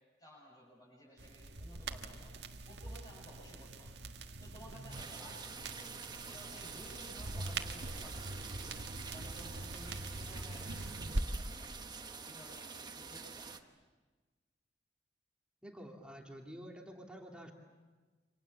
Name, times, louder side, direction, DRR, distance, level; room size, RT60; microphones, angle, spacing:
voice 1, 0.2-2.3 2.7-4.0 4.4-5.9 6.2-8.7 9.1-10.8 11.3-13.5, equal, 25° left, -7 dB, 7.6 m, -55 dB
sound 1, 1.2-11.2, right 2 dB, 80° right, 1.7 m, -43 dB
sound 2, 4.9-13.6, right 5 dB, 25° right, 1.2 m, -47 dB
voice 2, 15.6-17.5, equal, 5° right, 0 dB, 2.9 m, -49 dB
29.0 x 26.5 x 7.3 m, 1.3 s
head